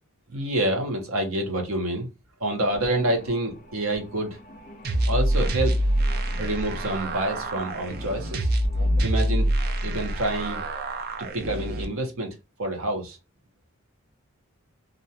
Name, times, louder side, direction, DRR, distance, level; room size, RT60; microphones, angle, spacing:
voice 1, 0.3-2.1 2.4-4.4 5.1-5.8 6.4-8.5 9.0-9.5 9.8-10.6 11.2-13.2, right 1 dB, 75° right, 3 dB, 0.8 m, -27 dB
sound 1, 2.6-9.5, equal, 40° left, 0.5 m, -48 dB
sound 2, 4.8-11.8, right 1 dB, 45° right, 0.4 m, -25 dB
2.5 x 2.2 x 2.7 m, 0.25 s
head